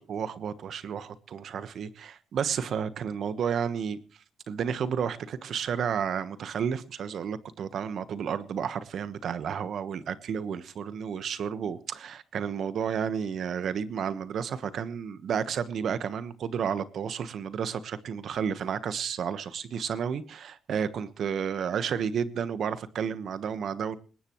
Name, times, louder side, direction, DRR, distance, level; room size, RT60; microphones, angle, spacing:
voice 1, 0.0-4.0 4.5-24.0, right 7 dB, 60° right, 1.2 m, -31 dB
20.5 x 18.5 x 3.1 m
cardioid pair, 90°, 0 cm